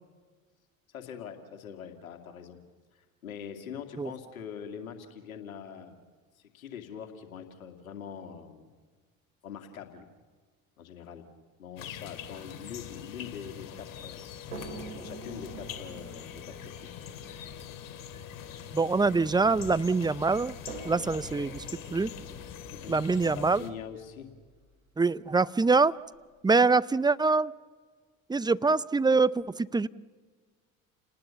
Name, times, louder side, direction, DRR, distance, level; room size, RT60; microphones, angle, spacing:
voice 1, 0.9-2.6 2.9-6.0 6.4-8.7 9.4-10.1 10.8-11.2 11.6-14.3 14.9-16.9 22.7-24.3, left 8 dB, 85° left, 6 dB, 2.3 m, -43 dB
sound 1, 11.8-23.7, left 9 dB, 50° left, 2.9 m, -43 dB
sound 2, 14.5-19.7 20.7-24.6 25.6-25.7 26.1-26.2, right 2 dB, 90° right, 4.9 m, -46 dB
voice 2, 18.7-20.5 20.8-21.6 21.9-22.1 22.9-23.6 25.0-25.9 26.4-27.5 28.3-29.9, right 4 dB, 10° right, 18 dB, 0.6 m, -24 dB
29.5 x 19.5 x 7.0 m, 1.5 s
hypercardioid pair, 65°, 41 cm